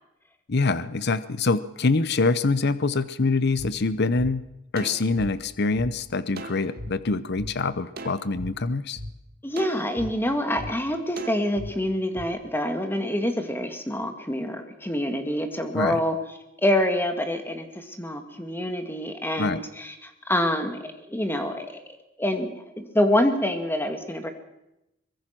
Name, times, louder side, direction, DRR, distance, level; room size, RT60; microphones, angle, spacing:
voice 1, 0.5-4.4 4.7-9.0 15.7-16.0 19.4-19.6, left 3 dB, 55° left, 14 dB, 0.8 m, -25 dB
sound 1, 3.6-3.7 4.2-4.3 4.8-5.9 6.4-6.9 7.4-7.5 8.0-8.5 9.0-9.1 9.6-10.1 10.6-10.7 11.2-11.7 12.2-12.3, right 1 dB, 50° right, 2.1 m, -37 dB
voice 2, 9.4-16.2 16.6-21.8 22.2-24.3, left 1 dB, 10° left, 6 dB, 2.4 m, -26 dB
23.5 x 21.5 x 6.1 m, 0.89 s
head